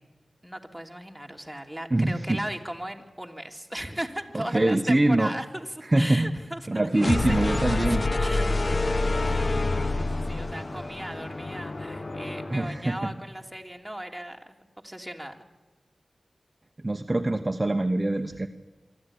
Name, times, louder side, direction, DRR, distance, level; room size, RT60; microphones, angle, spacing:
voice 1, 0.4-7.8 8.1-8.8 9.2-15.5, right 1 dB, 5° right, 2 dB, 2.7 m, -37 dB
voice 2, 1.9-2.4 4.3-5.3 5.9-6.3 6.7-8.0 12.5-13.1 16.8-18.5, right 2 dB, 30° right, 5 dB, 1.1 m, -24 dB
sound 1, 6.9-12.8, left 2 dB, 45° left, 1.0 m, -27 dB
24.5 x 13.0 x 9.9 m, 1.2 s
cardioid pair, 50°, 0 cm